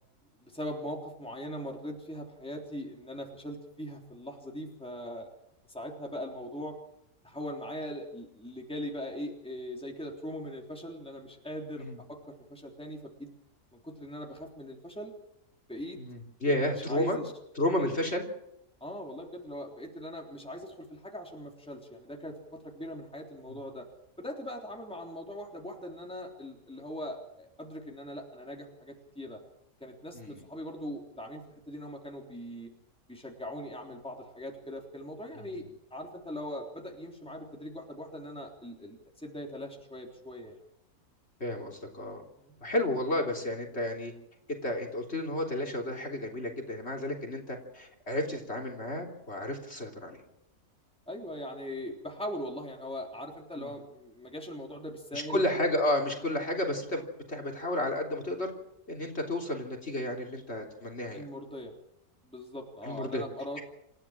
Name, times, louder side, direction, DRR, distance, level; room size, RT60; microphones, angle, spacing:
voice 1, 0.4-5.3 5.7-6.8 7.2-13.3 13.7-15.1 15.7-16.0 16.9-17.3 17.8-17.9 18.8-23.9 24.2-29.4 29.8-32.7 33.1-35.6 35.9-40.6 42.4-42.6 51.1-55.4 61.1-61.7 62.2-63.6, equal, 5° left, 0 dB, 3.4 m, -40 dB
voice 2, 16.0-17.2 17.6-18.3 30.1-30.4 35.4-35.7 41.4-42.2 42.6-44.1 44.5-50.2 53.6-53.7 55.1-58.5 58.9-61.3 62.8-63.2, left 1 dB, 45° left, 4 dB, 3.7 m, -32 dB
28.5 x 14.5 x 7.4 m, 0.80 s
omnidirectional pair, 1.6 m